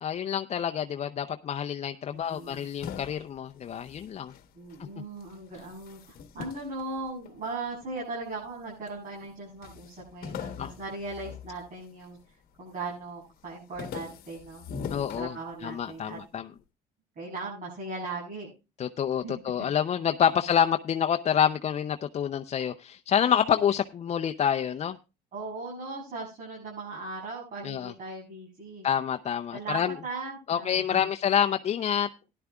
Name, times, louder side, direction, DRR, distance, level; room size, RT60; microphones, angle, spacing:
voice 1, 0.0-4.3 10.6-10.7 14.9-15.3 15.6-16.5 18.8-25.0 27.6-27.9 28.8-30.0 30.5-32.1, left 9 dB, 40° left, 7 dB, 0.5 m, -27 dB
voice 2, 2.1-2.7 4.6-12.2 12.6-16.2 17.2-18.5 19.2-19.3 25.3-28.9 29.5-31.0, right 3 dB, 50° right, -5 dB, 7.1 m, -38 dB
sound 1, 2.2-4.9 5.2-7.7 8.3-9.0 9.2-9.3 9.6-12.2 12.6-13.0 13.4-16.0, left 7 dB, 60° left, 1.2 m, -42 dB
17.0 x 11.0 x 2.3 m, 0.29 s
cardioid pair, 110°, 17 cm